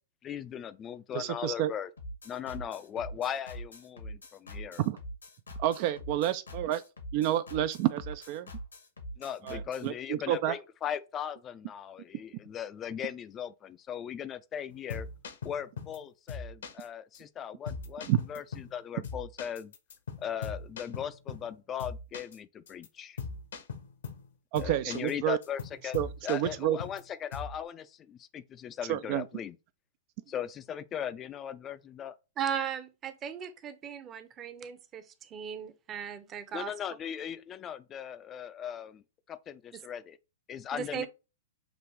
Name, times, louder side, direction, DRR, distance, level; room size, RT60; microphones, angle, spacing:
voice 1, 0.2-1.9 2.3-4.8 9.2-15.1 15.4-19.7 20.2-23.2 24.6-26.0 26.2-29.5 30.3-32.1 36.5-39.0 39.3-40.2 40.5-41.1, left 9 dB, 25° left, 0.4 m, -38 dB
voice 2, 1.1-1.7 4.8-5.0 5.6-6.8 7.1-8.5 9.4-10.6 18.1-18.2 24.5-25.4 25.9-26.8 28.9-29.2, right 13 dB, 45° right, 0.3 m, -29 dB
sound 1, 2.0-9.9, equal, 85° left, 1.3 m, -43 dB
sound 2, 14.7-16.0 16.3-16.9 17.1-17.2 17.7-18.8 19.0-21.5 21.8-22.4 22.7-22.9 23.2-24.3 24.6-25.1 25.4-27.0 27.3-27.6, left 5 dB, 70° left, 0.9 m, -40 dB
voice 3, 32.4-36.7 39.7-39.8 40.7-41.1, right 8 dB, 30° right, 0.7 m, -37 dB
6.0 x 2.5 x 3.1 m
figure-of-eight pair, 105°, 0 cm